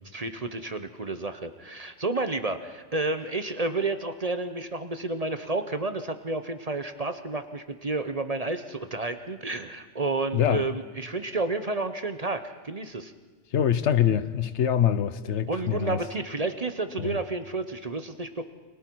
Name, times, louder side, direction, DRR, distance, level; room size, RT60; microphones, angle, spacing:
voice 1, 0.1-13.1 15.5-18.4, right 3 dB, 35° right, 0.9 m, -31 dB
voice 2, 10.3-10.7 13.5-16.0 17.0-17.2, left 9 dB, 70° left, 1.1 m, -24 dB
29.5 x 25.0 x 4.7 m
omnidirectional pair, 1.3 m